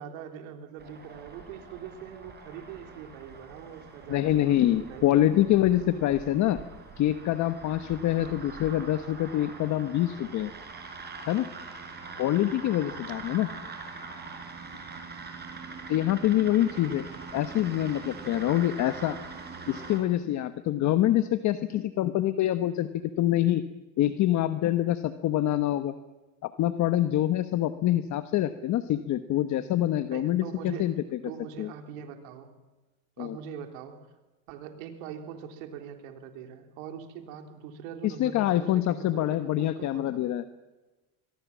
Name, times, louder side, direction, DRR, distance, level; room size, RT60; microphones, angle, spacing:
voice 1, 0.0-5.6 8.0-8.4 30.1-30.9 31.2-32.5 33.2-34.0 34.5-40.2, right 8 dB, 80° right, 5 dB, 3.8 m, -42 dB
sound 1, 0.8-20.0, right 4 dB, 25° right, 5.5 m, -43 dB
voice 2, 4.1-6.6 7.0-10.5 11.3-11.5 12.2-13.5 15.9-17.1 17.3-19.2 19.7-22.9 23.2-23.6 24.0-25.9 26.4-31.0 31.6-31.7 33.2-33.4 38.0-40.4, left 13 dB, 45° left, 11 dB, 1.1 m, -25 dB
24.5 x 22.0 x 7.3 m, 1.1 s
supercardioid pair, 125°, 41 cm